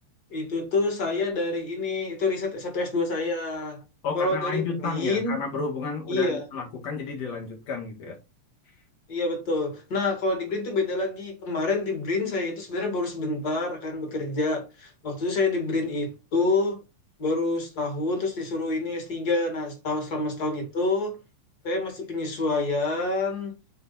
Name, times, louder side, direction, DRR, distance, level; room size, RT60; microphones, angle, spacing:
voice 1, 0.3-3.8 4.1-5.4 6.1-6.4 9.1-16.8 17.2-21.2 21.6-23.6, left 3 dB, 35° left, 2.0 m, -27 dB
voice 2, 4.0-8.2, left 4 dB, 60° left, 2.8 m, -31 dB
6.6 x 4.3 x 4.1 m
omnidirectional pair, 3.4 m